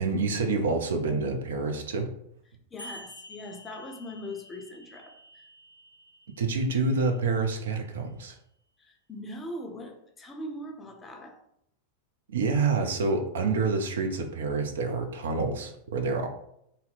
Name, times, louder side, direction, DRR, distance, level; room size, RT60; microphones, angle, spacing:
voice 1, 0.0-2.1 6.4-8.4 12.3-16.3, right 4 dB, 60° right, 5 dB, 0.4 m, -27 dB
voice 2, 2.7-5.4 8.8-11.4, left 1 dB, 15° left, 3 dB, 0.5 m, -41 dB
sound 1, 2.8-7.8, equal, 80° left, 0.4 m, -50 dB
2.6 x 2.0 x 3.9 m, 0.74 s
figure-of-eight pair, 90°, 0 cm